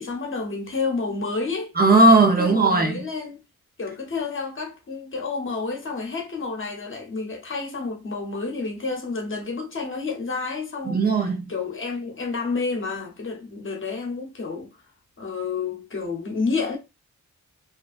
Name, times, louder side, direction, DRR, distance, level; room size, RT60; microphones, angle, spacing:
voice 1, 0.0-1.7 2.4-3.4 3.8-11.0 11.5-14.7 15.2-16.8, left 4 dB, 40° left, 0.8 m, -30 dB
voice 2, 1.8-3.1 10.9-11.5, right 2 dB, 30° right, 0.5 m, -17 dB
2.4 x 2.2 x 2.4 m
wide cardioid pair, 115°, 31 cm